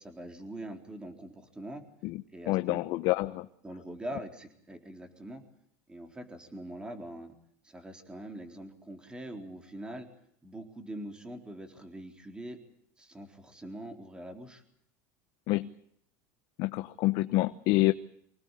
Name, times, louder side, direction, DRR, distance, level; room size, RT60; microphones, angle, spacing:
voice 1, 0.0-1.8 2.3-2.8 3.6-5.4 5.9-7.3 7.6-10.1 10.4-12.6 13.0-14.6, right 1 dB, 10° right, 5 dB, 3.9 m, -43 dB
voice 2, 2.5-3.5 15.5-15.7 16.6-17.9, left 19 dB, 55° left, 11 dB, 0.9 m, -27 dB
25.0 x 19.5 x 8.3 m, 0.70 s
supercardioid pair, 140°, 9 cm